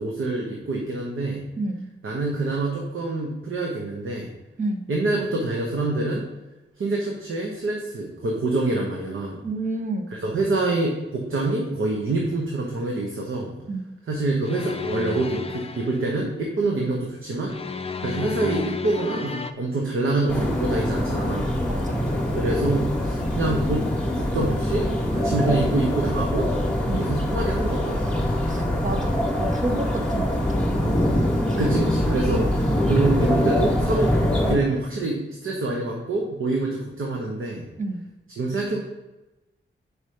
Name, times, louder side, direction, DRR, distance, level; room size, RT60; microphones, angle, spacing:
voice 1, 0.0-1.4 2.0-4.3 4.9-6.2 6.8-9.4 10.1-13.6 14.1-17.5 18.0-21.6 22.3-26.5 26.9-28.3 31.6-37.7 38.4-38.8, right 2 dB, 80° right, -1 dB, 1.1 m, -26 dB
voice 2, 1.6-1.9 4.6-4.9 9.4-10.1 13.7-13.8 21.7-22.0 26.9-27.0 28.5-30.7 37.8-38.0, right 2 dB, 40° right, 4 dB, 0.9 m, -30 dB
sound 1, 14.4-16.1 17.5-19.5, left 4 dB, 30° left, 0.4 m, -31 dB
sound 2, 20.3-34.5, left 1 dB, 5° left, 1.3 m, -24 dB
5.0 x 4.9 x 5.6 m, 1.0 s
wide cardioid pair, 160°, 21 cm